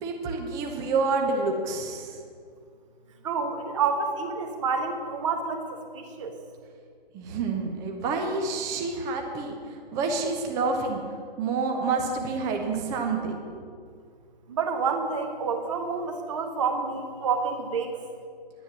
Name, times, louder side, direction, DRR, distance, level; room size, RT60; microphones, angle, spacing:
voice 1, 0.0-2.2 7.1-11.0 11.4-13.6, right 4 dB, 10° right, 2 dB, 0.9 m, -28 dB
voice 2, 3.2-5.6 5.9-6.3 14.5-17.9, right 5 dB, 30° right, 5 dB, 1.5 m, -28 dB
11.0 x 10.5 x 7.2 m, 2.1 s
figure-of-eight pair, 140°, 29 cm